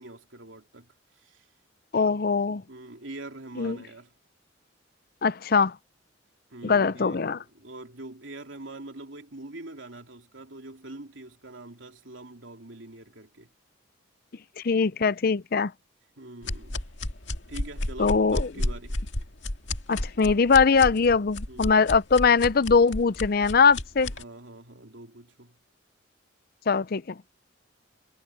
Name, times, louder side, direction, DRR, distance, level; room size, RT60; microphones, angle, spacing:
voice 1, 0.0-1.5 2.7-4.1 6.5-13.5 16.2-16.8 17.5-19.1 21.5-21.9 24.1-25.5, right 2 dB, 75° right, 3.0 m, -44 dB
voice 2, 1.9-2.6 3.6-3.8 5.2-5.7 6.6-7.4 14.6-15.7 18.0-18.5 19.9-24.1 26.7-27.0, left 5 dB, 50° left, 0.5 m, -21 dB
sound 1, 16.4-24.2, left 1 dB, 70° left, 2.1 m, -32 dB
head